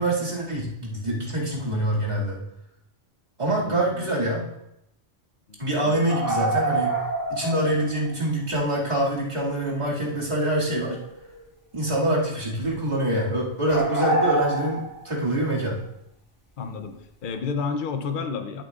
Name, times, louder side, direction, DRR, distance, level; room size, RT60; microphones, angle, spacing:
voice 1, 0.0-2.4 3.4-4.5 5.6-6.9 7.3-11.0 11.7-15.8, right 1 dB, 35° right, -6 dB, 2.4 m, -25 dB
voice 2, 3.6-4.1 5.5-6.2 16.6-18.6, left 5 dB, 50° left, 7 dB, 0.8 m, -32 dB
sound 1, 6.1-8.2 10.7-11.4 11.8-12.1 13.7-15.1, right 3 dB, 15° left, 1.5 m, -26 dB
12.5 x 8.0 x 2.4 m, 0.81 s
omnidirectional pair, 1.3 m